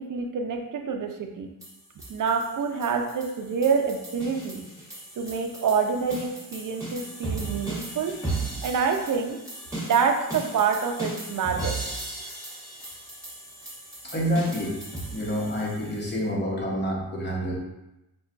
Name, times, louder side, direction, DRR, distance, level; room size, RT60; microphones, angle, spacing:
voice 1, 0.0-1.5 2.1-4.7 5.2-8.2 8.6-9.4 9.8-11.8, right 6 dB, 60° right, 4 dB, 0.5 m, -27 dB
sound 1, 1.6-16.2, right 2 dB, 10° right, 1.2 m, -37 dB
voice 2, 14.1-14.8 15.1-17.6, equal, 30° left, -3 dB, 0.9 m, -27 dB
5.7 x 2.2 x 2.4 m, 0.95 s
wide cardioid pair, 140°, 36 cm